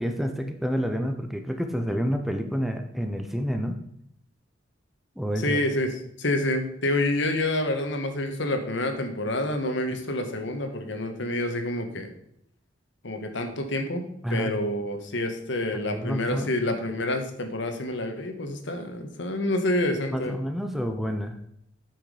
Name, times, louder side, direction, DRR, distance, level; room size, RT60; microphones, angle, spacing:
voice 1, 0.0-3.7 5.2-5.6 14.2-14.5 15.9-16.5 20.1-21.4, equal, ahead, 6 dB, 0.6 m, -29 dB
voice 2, 5.4-12.1 13.0-14.0 14.3-20.4, left 1 dB, 65° left, 6 dB, 1.4 m, -28 dB
8.8 x 6.2 x 4.9 m, 0.74 s
head